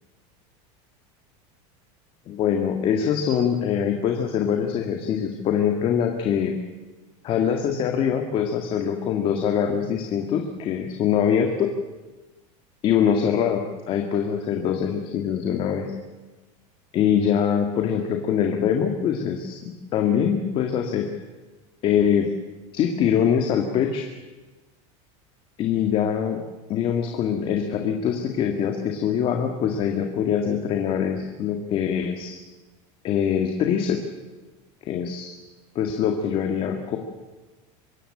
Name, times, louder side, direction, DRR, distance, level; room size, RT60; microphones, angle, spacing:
voice 1, 2.3-6.5 7.2-11.7 12.8-15.9 16.9-21.1 21.8-22.3 22.7-24.1 25.6-26.4 26.7-32.4 33.0-34.0 34.9-35.3 35.8-37.0, left 8 dB, 35° left, 4 dB, 2.1 m, -23 dB
24.5 x 14.5 x 10.0 m, 1.2 s
supercardioid pair, 160°, 16 cm